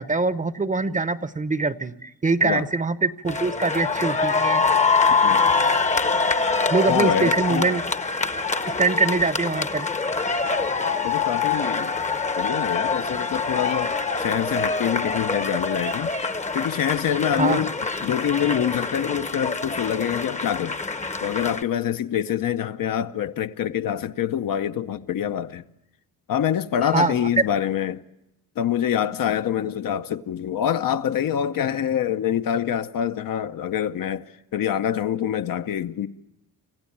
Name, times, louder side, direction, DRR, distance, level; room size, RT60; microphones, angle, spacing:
voice 1, 0.0-4.6 6.7-7.8 8.7-9.9 17.3-17.6 26.8-27.2, right 3 dB, 20° right, 0.7 m, -23 dB
sound 1, 3.3-21.6, left 4 dB, 20° left, 0.8 m, -24 dB
voice 2, 6.9-7.7 11.0-11.9 12.3-16.1 16.5-17.7 18.0-20.8 21.2-25.6 26.3-28.0 28.6-36.1, left 9 dB, 65° left, 0.8 m, -25 dB
27.0 x 15.5 x 8.6 m
cardioid pair, 120°, 36 cm